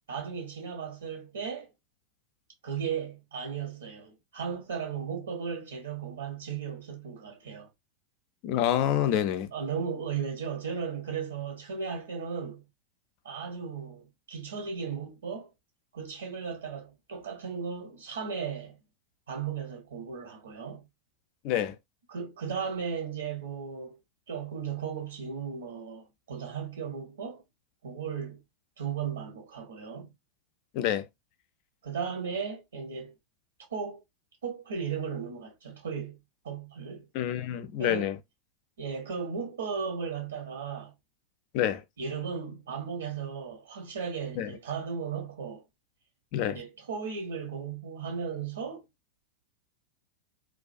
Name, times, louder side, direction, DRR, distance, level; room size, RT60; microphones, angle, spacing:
voice 1, 0.1-1.7 2.6-7.7 9.5-12.6 13.2-15.5 15.9-18.8 19.3-20.8 22.1-24.0 24.3-27.4 27.8-28.4 28.8-30.1 31.8-33.1 33.7-34.0 34.4-36.2 36.4-37.1 37.8-38.1 38.8-40.9 42.0-45.6 46.5-48.8, right 6 dB, 65° right, 0.8 m, -36 dB
voice 2, 8.4-9.5 21.4-21.8 30.7-31.1 37.1-38.2 41.5-41.8 44.4-44.5 46.3-46.6, left 11 dB, 45° left, 0.4 m, -27 dB
2.3 x 2.2 x 2.4 m
figure-of-eight pair, 90°, 0 cm